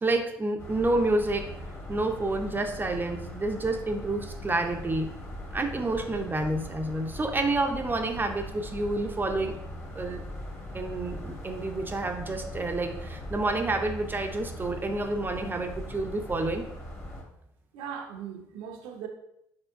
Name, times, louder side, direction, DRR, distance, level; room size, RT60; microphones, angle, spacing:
voice 1, 0.0-1.5 1.9-5.1 5.5-9.6 9.9-10.2 10.7-16.7, right 2 dB, 25° right, 0.6 m, -29 dB
sound 1, 0.6-17.2, left 1 dB, 30° left, 1.5 m, -40 dB
voice 2, 17.7-19.1, right 8 dB, 75° right, 0.7 m, -39 dB
4.4 x 4.3 x 2.5 m
hypercardioid pair, 65°, 9 cm